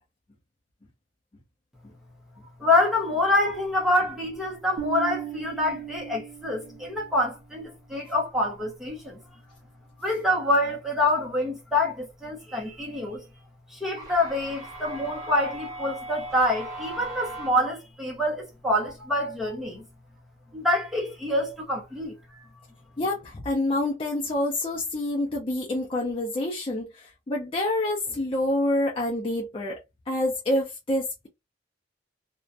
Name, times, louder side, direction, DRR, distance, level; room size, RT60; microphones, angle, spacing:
voice 1, 2.6-9.2 10.0-13.2 13.7-19.8 20.5-22.5, left 1 dB, ahead, 0.7 m, -26 dB
sound 1, 3.5-4.3 14.0-17.5, right 2 dB, 20° right, 1.0 m, -39 dB
Bass guitar, 4.8-7.2, right 13 dB, 55° right, 0.5 m, -37 dB
voice 2, 23.0-29.8 30.1-31.3, left 1 dB, 30° left, 0.5 m, -27 dB
2.4 x 2.1 x 2.5 m
head